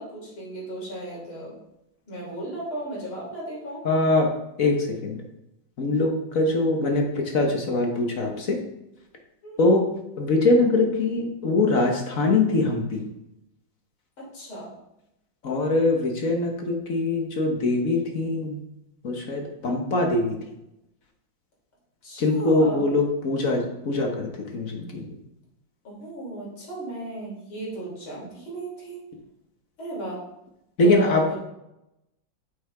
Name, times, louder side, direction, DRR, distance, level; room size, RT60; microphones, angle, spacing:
voice 1, 0.0-1.5 2.1-3.9 9.4-9.7 14.2-14.7 22.0-22.9 25.8-29.0 29.8-30.2 30.8-31.4, right 1 dB, 85° left, -5 dB, 4.3 m, -35 dB
voice 2, 3.8-4.3 4.6-5.2 5.8-8.6 9.6-9.9 10.2-13.0 15.4-18.6 19.0-20.4 22.2-25.1 30.8-31.3, left 2 dB, 50° left, 2 dB, 1.3 m, -23 dB
8.6 x 7.5 x 3.4 m, 0.87 s
omnidirectional pair, 2.2 m